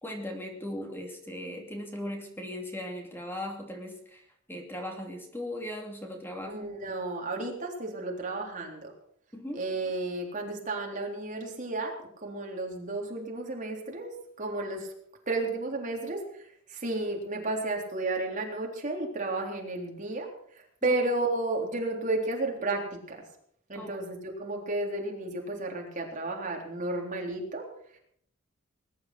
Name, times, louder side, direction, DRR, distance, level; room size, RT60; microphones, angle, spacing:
voice 1, 0.0-4.2 4.5-6.6 9.3-9.7 20.8-21.0 23.7-24.0, left 1 dB, 10° left, 2 dB, 2.6 m, -38 dB
voice 2, 6.5-8.9 9.5-11.9 12.2-14.1 14.4-14.9 15.3-16.2 16.7-20.3 20.8-23.2 23.7-27.7, right 2 dB, 40° right, 0 dB, 3.7 m, -32 dB
20.5 x 11.0 x 6.1 m, 0.67 s
head